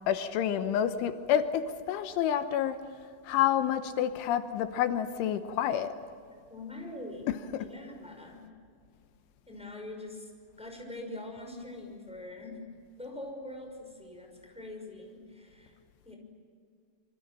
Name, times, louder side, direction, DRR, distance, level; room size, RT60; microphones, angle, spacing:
voice 1, 0.1-2.8 3.3-5.9 7.3-7.7, left 10 dB, 85° left, 9 dB, 3.4 m, -29 dB
voice 2, 6.5-7.3 7.6-8.4 9.5-10.3 10.6-12.6 13.0-15.8 16.0-16.2, left 1 dB, ahead, 2 dB, 5.3 m, -43 dB
27.5 x 26.0 x 7.6 m, 2.2 s
omnidirectional pair, 5.5 m